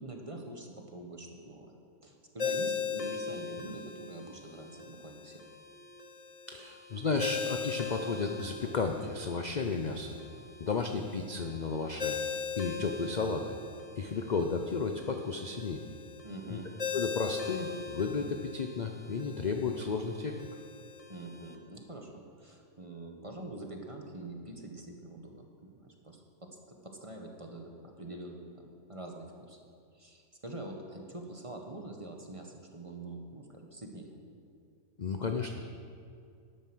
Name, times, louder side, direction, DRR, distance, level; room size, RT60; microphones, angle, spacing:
voice 1, 0.0-5.4 16.2-16.7 21.1-26.2 26.7-29.6 29.9-34.2, right 2 dB, 25° right, 2 dB, 1.0 m, -45 dB
Ringtone, 2.4-21.5, left 5 dB, 30° left, 0.9 m, -40 dB
voice 2, 6.5-10.2 10.6-13.6 14.0-15.8 16.5-16.6 16.9-20.4 35.0-35.6, left 4 dB, 55° left, 5 dB, 0.4 m, -33 dB
12.0 x 9.2 x 6.1 m, 2.4 s
omnidirectional pair, 1.6 m